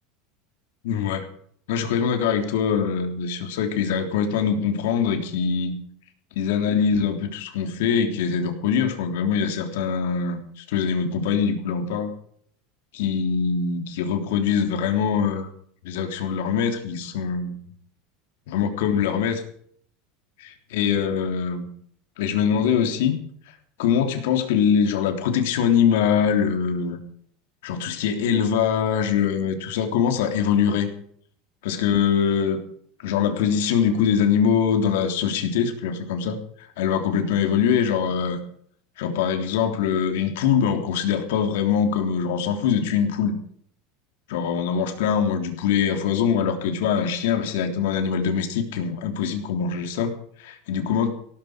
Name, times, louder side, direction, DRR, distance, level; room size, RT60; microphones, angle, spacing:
voice 1, 0.8-1.3 1.7-5.7 6.3-12.1 12.9-15.5 15.8-17.6 18.5-19.4 20.7-21.7 22.2-23.2 23.8-27.0 27.6-30.9 31.6-32.6 33.0-36.4 36.8-38.4 39.0-43.4 44.3-50.1 50.4-51.1, left 7 dB, 75° left, 6 dB, 3.3 m, -23 dB
17.0 x 14.0 x 5.1 m, 0.62 s
supercardioid pair, 165°, 0 cm